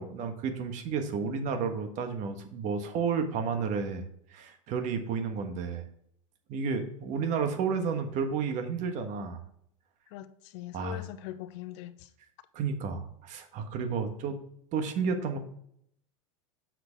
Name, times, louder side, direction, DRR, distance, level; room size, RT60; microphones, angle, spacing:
voice 1, 0.0-4.0 4.3-5.9 6.5-9.4 10.7-11.0 12.5-14.4 14.7-15.4, right 5 dB, 50° right, 1.4 m, -31 dB
voice 2, 10.1-12.1, left 14 dB, 65° left, 0.8 m, -42 dB
7.6 x 6.0 x 3.5 m
hypercardioid pair, 110°, 17 cm